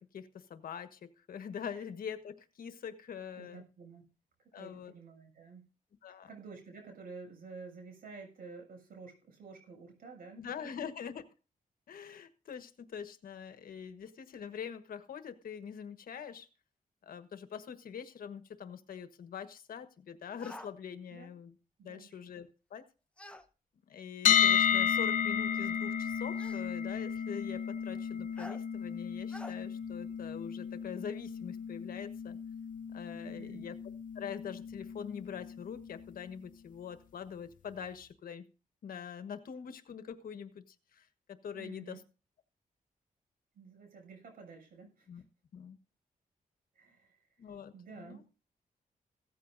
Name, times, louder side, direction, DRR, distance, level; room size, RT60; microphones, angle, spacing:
voice 1, 0.0-3.6 4.5-4.9 6.0-6.3 10.4-11.2 11.9-16.5 17.0-21.5 21.8-22.9 23.9-32.4 32.9-33.8 34.1-38.4 38.8-42.0 45.1-45.2 45.5-45.8 47.4-48.2, left 7 dB, 85° left, 10 dB, 1.4 m, -44 dB
voice 2, 3.3-4.0 4.6-5.7 6.1-10.7 21.1-21.3 21.8-22.2 33.1-33.7 41.5-42.0 43.5-45.2 46.8-47.3 47.7-48.4, right 4 dB, 85° right, 3 dB, 7.0 m, -51 dB
sound 1, 20.4-20.7 23.2-23.5 24.7-24.8 26.4-26.7 28.4-28.6 29.3-29.6, left 1 dB, 10° left, 1.0 m, -47 dB
sound 2, 24.3-36.2, left 8 dB, 65° left, 0.8 m, -33 dB
16.5 x 14.0 x 2.7 m, 0.34 s
wide cardioid pair, 160°, 15 cm